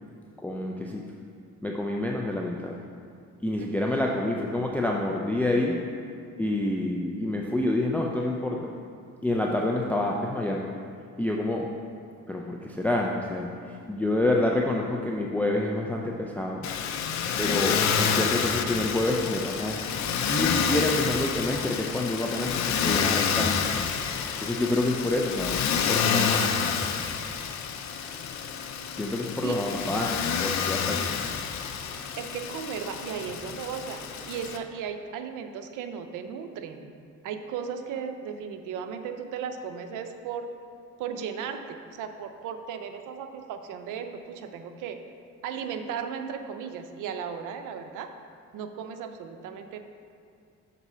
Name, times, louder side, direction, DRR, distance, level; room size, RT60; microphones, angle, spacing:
voice 1, 0.4-1.0 1.6-2.8 3.4-5.8 6.4-8.7 9.2-10.7 11.2-11.7 12.3-16.7 17.4-20.0 20.3-23.6 24.4-25.6 25.9-26.5 28.9-31.3 32.0-32.1, left 1 dB, 5° left, -1 dB, 0.4 m, -28 dB
voice 2, 3.6-4.1 29.4-29.6 32.2-36.9 37.2-40.5 41.0-45.0 45.4-48.1 48.5-49.8, right 7 dB, 85° right, 7 dB, 0.6 m, -36 dB
Motor vehicle (road), 16.6-34.6, left 7 dB, 65° left, 0.6 m, -28 dB
6.0 x 4.1 x 5.5 m, 2.4 s
cardioid pair, 90°, 30 cm